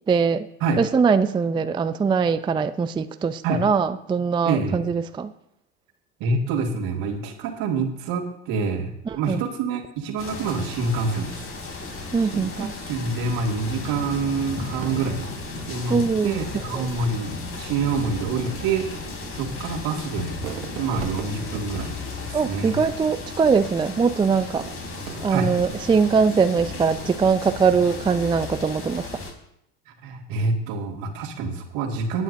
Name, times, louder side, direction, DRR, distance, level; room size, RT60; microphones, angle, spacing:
voice 1, 0.1-0.5 0.8-5.3 9.1-9.4 12.1-12.7 15.9-16.4 16.7-16.9 22.3-24.7 25.2-29.1, right 5 dB, 15° right, 11 dB, 0.4 m, -22 dB
voice 2, 4.4-4.8 6.2-11.4 12.2-15.3 15.7-18.9 19.3-20.4 20.8-22.8 25.3-25.5 29.9-32.2, right 4 dB, 65° right, 3 dB, 2.1 m, -27 dB
sound 1, 10.2-29.3, left 3 dB, 35° left, 3.1 m, -35 dB
Fireworks, 14.8-16.4 17.3-17.4 18.0-23.3 24.4-26.2 26.7-27.2, right 11 dB, 80° right, 0.9 m, -40 dB
19.0 x 9.2 x 2.6 m, 0.77 s
hypercardioid pair, 80°, 38 cm